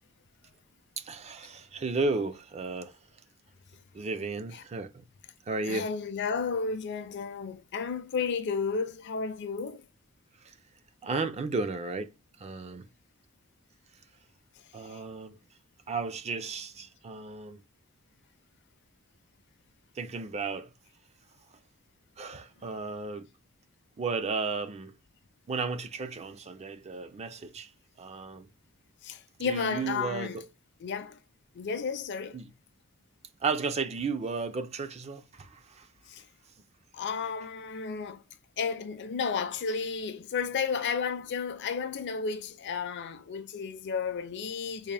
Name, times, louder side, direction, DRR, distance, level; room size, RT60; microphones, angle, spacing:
voice 1, 1.0-3.0 3.9-5.0 5.5-5.9 10.4-10.6 11.0-12.1 12.4-12.9 14.7-15.4 15.9-17.6 20.0-20.7 22.2-23.3 24.0-24.9 25.5-27.7 28.0-28.5 29.4-30.5 32.3-32.5 33.4-35.9, right 4 dB, 30° right, 0.3 m, -34 dB
voice 2, 5.7-9.9 14.8-15.0 29.0-30.4 30.8-31.2 31.5-32.4 36.1-36.2 36.9-38.2 38.6-44.9, left 5 dB, 50° left, 0.5 m, -33 dB
3.6 x 2.4 x 3.3 m
head